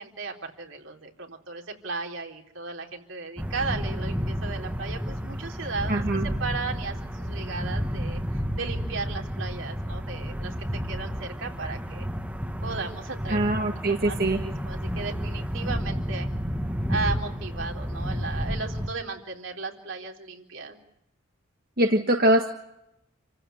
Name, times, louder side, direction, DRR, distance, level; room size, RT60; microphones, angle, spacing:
voice 1, 0.0-6.0 6.4-10.5 10.9-12.1 12.6-13.5 13.9-16.3 16.9-20.8, right 4 dB, 75° right, 1 dB, 3.9 m, -35 dB
sound 1, 3.4-18.9, equal, 5° right, 1.5 m, -31 dB
voice 2, 5.9-6.3 13.3-14.4 21.8-22.5, right 1 dB, 45° right, 3 dB, 1.6 m, -23 dB
28.5 x 15.5 x 9.4 m, 0.84 s
head